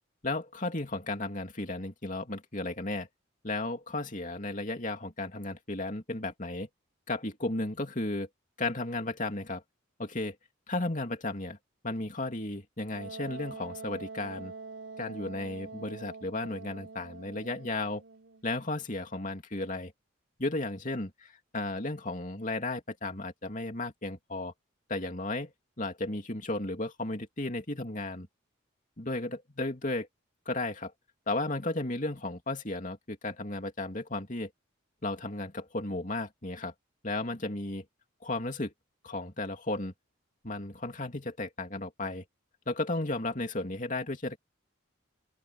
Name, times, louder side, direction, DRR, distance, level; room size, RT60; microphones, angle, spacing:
voice 1, 0.2-3.1 3.4-6.7 7.1-8.3 8.6-9.6 10.0-10.4 10.7-11.6 11.8-14.5 15.0-18.0 18.4-19.9 20.4-24.5 24.9-25.5 25.8-28.3 29.0-30.1 30.4-30.9 31.3-34.5 35.0-36.7 37.0-37.8 38.2-38.7 39.0-39.9 40.4-42.2 42.7-44.4, left 2 dB, 40° left, 2.9 m, -34 dB
Wind instrument woodwind instrument, 12.9-18.5, right 4 dB, 65° right, 3.9 m, -45 dB
open air
head